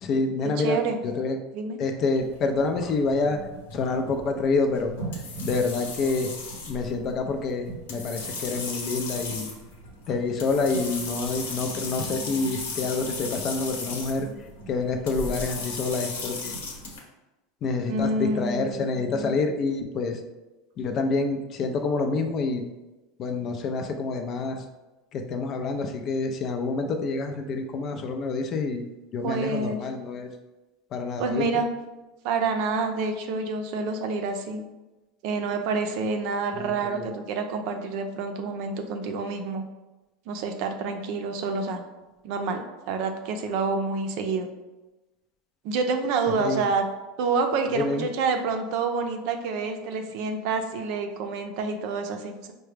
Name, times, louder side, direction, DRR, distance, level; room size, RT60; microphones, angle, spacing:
voice 1, 0.0-1.4 1.8-3.4 3.7-4.9 5.4-6.3 6.7-9.5 10.1-14.3 14.7-16.5 17.6-20.2 20.8-22.6 23.2-24.7 25.1-28.8 29.1-30.3 30.9-31.4 36.6-37.1 46.4-46.6 47.7-48.1, left 3 dB, 45° left, 5 dB, 0.5 m, -27 dB
voice 2, 0.6-1.0 1.5-1.8 17.9-19.3 29.2-29.8 31.2-31.8 32.2-34.6 35.2-39.6 40.3-41.8 42.2-44.5 45.6-46.8 47.2-52.5, right 4 dB, 65° right, 5 dB, 0.5 m, -28 dB
sound 1, 2.2-17.0, left 2 dB, 90° left, 0.9 m, -36 dB
4.6 x 2.2 x 3.3 m, 1.1 s
supercardioid pair, 105°, 0 cm